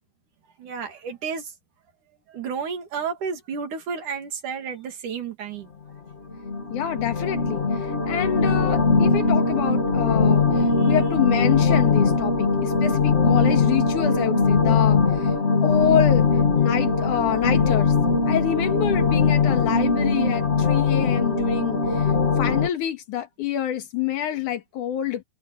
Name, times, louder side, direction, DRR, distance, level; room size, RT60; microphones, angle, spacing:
voice 1, 0.6-1.5 2.3-5.7, right 6 dB, 80° right, 4.2 m, -31 dB
sound 1, 6.3-22.7, left 4 dB, 30° left, 1.3 m, -21 dB
voice 2, 6.7-15.3 15.6-16.3 16.5-17.9 18.3-22.1 22.4-25.2, left 10 dB, 80° left, 3.1 m, -27 dB
omnidirectional pair, 3.5 m